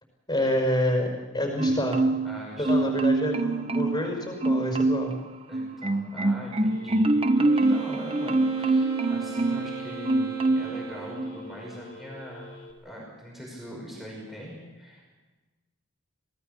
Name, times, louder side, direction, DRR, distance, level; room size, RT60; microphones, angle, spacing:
voice 1, 0.3-2.1 2.6-5.1, left 1 dB, 20° left, 2 dB, 5.4 m, -27 dB
Marimba xylophone, 1.6-2.4 2.6-4.1 4.4-5.1 5.5-9.7 10.1-10.8 11.2-11.4, right 2 dB, 25° right, 0.9 m, -25 dB
voice 2, 2.2-3.0 5.5-12.6 12.8-15.0, equal, ahead, -3 dB, 5.6 m, -42 dB
Telephone, 6.7-12.7, left 2 dB, 85° left, 4.5 m, -47 dB
Wind instrument woodwind instrument, 7.4-11.5, right 3 dB, 85° right, 3.1 m, -37 dB
27.0 x 18.5 x 6.9 m, 1.2 s
head